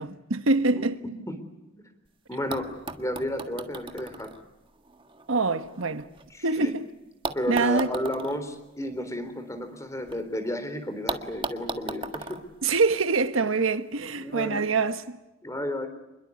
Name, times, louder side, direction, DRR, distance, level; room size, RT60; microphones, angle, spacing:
voice 1, 0.0-1.0 5.3-6.1 6.4-6.9 7.5-7.9 12.6-15.2, right 3 dB, 80° right, 1.3 m, -25 dB
voice 2, 0.7-1.4 2.3-4.3 6.3-6.7 7.3-12.4 13.4-13.5 14.2-14.7 15.4-15.9, left 1 dB, 15° left, 3.7 m, -33 dB
sound 1, 2.1-2.2 2.5-6.6 7.2-10.2 10.5-10.6 11.1-13.5 14.5-14.6, right 3 dB, 25° right, 1.7 m, -38 dB
27.5 x 22.0 x 8.5 m
head